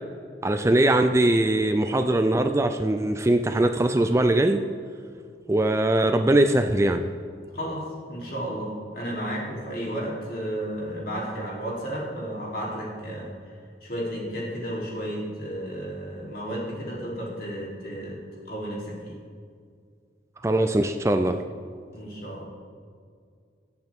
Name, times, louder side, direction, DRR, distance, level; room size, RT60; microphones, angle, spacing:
voice 1, 0.4-4.6 5.5-7.1 20.4-21.4, right 1 dB, 15° right, 7 dB, 0.4 m, -21 dB
voice 2, 7.5-13.5 13.8-18.2 18.5-19.2 21.9-22.5, equal, 55° left, -4 dB, 3.3 m, -33 dB
22.5 x 8.1 x 3.6 m, 2.2 s
head